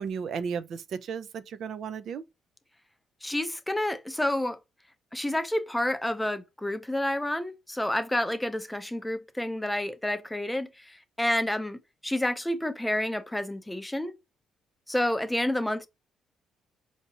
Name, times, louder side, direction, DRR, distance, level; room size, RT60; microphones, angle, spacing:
voice 1, 0.0-2.2, right 6 dB, 65° right, 0.4 m, -34 dB
voice 2, 3.2-4.6 5.1-14.1 14.9-15.9, left 1 dB, 10° left, 0.5 m, -29 dB
4.5 x 2.8 x 2.7 m
cardioid pair, 90°, 0 cm